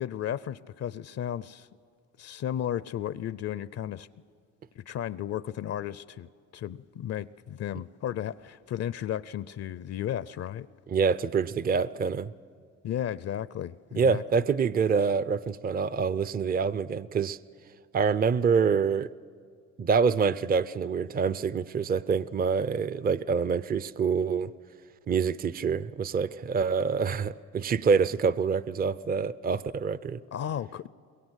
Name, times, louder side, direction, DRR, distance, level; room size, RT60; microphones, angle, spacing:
voice 1, 0.0-1.7 2.2-4.1 4.8-10.7 12.8-14.2 30.3-30.9, left 10 dB, 55° left, 18 dB, 0.5 m, -34 dB
voice 2, 10.9-12.3 14.0-17.4 17.9-19.1 19.8-24.5 25.1-30.2, right 5 dB, 30° right, 17 dB, 0.5 m, -26 dB
23.0 x 22.0 x 8.1 m, 2.2 s
cardioid pair, 90°, 30 cm